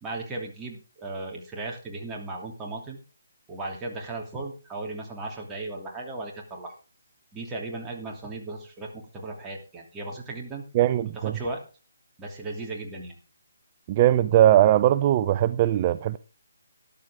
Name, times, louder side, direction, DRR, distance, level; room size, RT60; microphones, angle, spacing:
voice 1, 0.0-3.0 3.5-6.7 7.3-10.7 11.1-11.6 12.2-13.2, right 2 dB, 15° right, 2.9 m, -36 dB
voice 2, 10.7-11.4 13.9-16.2, right 12 dB, 30° right, 0.5 m, -20 dB
13.5 x 11.0 x 3.6 m
hypercardioid pair, 155°, 0 cm